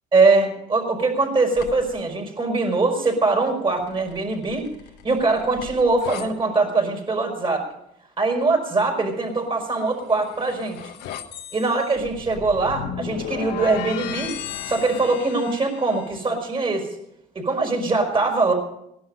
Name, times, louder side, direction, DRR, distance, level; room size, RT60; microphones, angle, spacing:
voice 1, 0.1-4.7 5.0-7.7 8.2-10.8 11.5-14.3 14.6-17.0 17.3-18.5, right 3 dB, 30° right, 2 dB, 5.0 m, -22 dB
sound 1, 1.5-2.0 3.9-6.3 9.8-16.2, left 10 dB, 85° left, 1.4 m, -36 dB
18.0 x 11.5 x 5.5 m, 0.78 s
cardioid pair, 110°, 17 cm